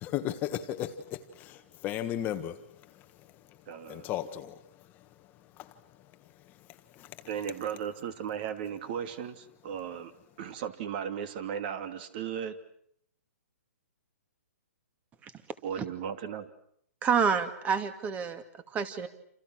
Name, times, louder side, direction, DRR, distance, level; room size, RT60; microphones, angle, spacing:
voice 1, 0.0-1.6 1.8-2.6 3.9-4.5 5.6-5.7 7.0-7.1, left 11 dB, 20° left, 8 dB, 1.6 m, -34 dB
voice 2, 3.7-4.1 7.2-10.1 10.4-12.6 15.6-16.5, right 8 dB, 40° right, 10 dB, 2.7 m, -36 dB
voice 3, 17.0-19.1, right 6 dB, 15° right, 11 dB, 2.4 m, -29 dB
29.0 x 28.0 x 6.4 m, 0.69 s
hypercardioid pair, 150°, 8 cm